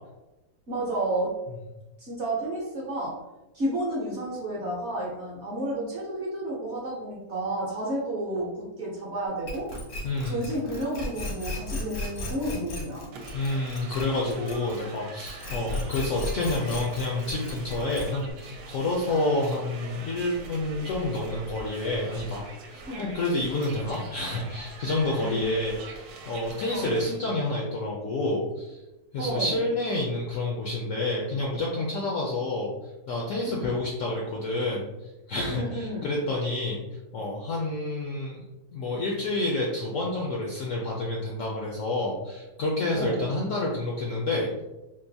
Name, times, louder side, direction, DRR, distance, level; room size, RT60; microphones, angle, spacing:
voice 1, 0.7-1.3 2.0-3.2 3.5-8.5 8.8-9.7 10.2-13.0 22.9-23.1 25.2-25.5 26.7-26.9 29.2-29.6 33.5-33.7 35.5-36.2 42.9-43.3, right 1 dB, 50° right, -5 dB, 0.9 m, -31 dB
sound 1, 9.5-15.0 15.2-18.3, left 1 dB, 85° left, 1.8 m, -35 dB
voice 2, 10.0-10.5 13.3-22.4 22.7-28.8 29.1-32.7 33.1-36.8 37.1-38.4 38.7-44.6, left 2 dB, 70° left, -2 dB, 0.7 m, -29 dB
sound 2, 13.1-27.1, right 3 dB, 80° right, 1.2 m, -43 dB
3.8 x 2.5 x 2.7 m, 1.0 s
omnidirectional pair, 1.9 m